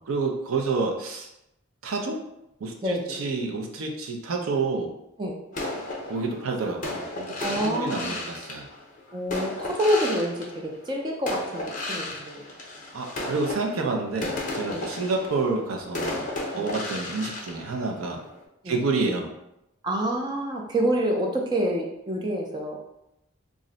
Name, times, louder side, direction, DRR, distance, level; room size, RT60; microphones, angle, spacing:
voice 1, 0.0-1.3 1.8-2.2 2.6-4.9 6.1-8.7 12.9-16.3 16.5-18.2 18.7-19.3, right 3 dB, 75° right, 2 dB, 0.5 m, -29 dB
voice 2, 2.8-3.2 5.2-5.4 7.4-8.1 9.1-12.4 14.7-14.9 16.5-16.7 18.6-18.7 19.8-22.8, equal, 20° right, 0 dB, 0.3 m, -27 dB
sound 1, 5.5-10.9 11.3-18.4, left 2 dB, 40° left, 0.5 m, -34 dB
2.5 x 2.1 x 3.7 m, 0.86 s
head